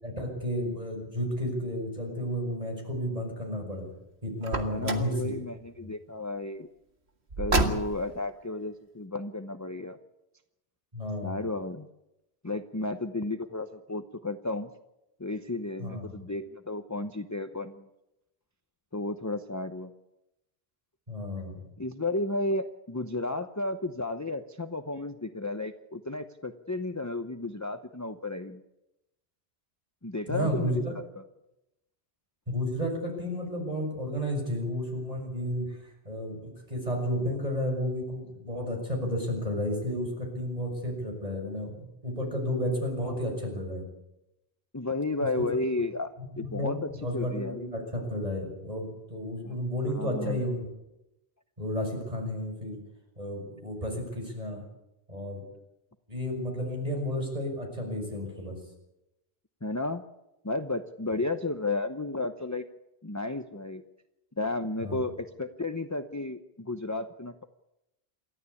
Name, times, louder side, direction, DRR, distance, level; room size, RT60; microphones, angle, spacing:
voice 1, 0.0-3.9 4.2-5.1 5.8-5.9 10.9-11.5 15.8-16.2 21.1-21.6 30.3-30.9 32.5-43.8 46.2-50.7 51.6-52.8 53.2-54.6 55.1-55.4 56.1-58.6 64.8-65.0, equal, 35° right, 2 dB, 6.5 m, -32 dB
Car, 4.4-5.2 7.3-8.2, right 2 dB, 90° right, 2.2 m, -28 dB
voice 2, 4.7-6.7 7.4-10.0 11.2-11.9 12.4-14.7 15.2-17.9 18.9-19.9 21.8-28.6 30.0-30.8 31.2-31.3 44.7-46.8 47.1-47.7 49.4-49.5 49.9-50.4 59.6-60.1 60.4-62.6 63.0-63.8 64.4-67.4, left 2 dB, 20° left, 7 dB, 0.8 m, -33 dB
28.0 x 13.5 x 8.4 m, 0.93 s
omnidirectional pair, 1.1 m